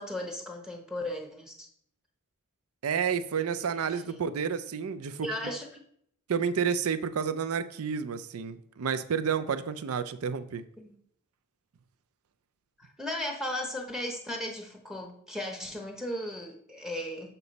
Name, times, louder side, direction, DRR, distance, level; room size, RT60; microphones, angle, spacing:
voice 1, 0.0-1.7 3.8-4.2 5.2-5.8 10.8-11.0 12.8-17.3, left 1 dB, 5° right, 2 dB, 0.7 m, -36 dB
voice 2, 2.8-5.3 6.3-10.6, right 6 dB, 85° right, 12 dB, 0.5 m, -30 dB
6.8 x 5.9 x 4.0 m, 0.68 s
head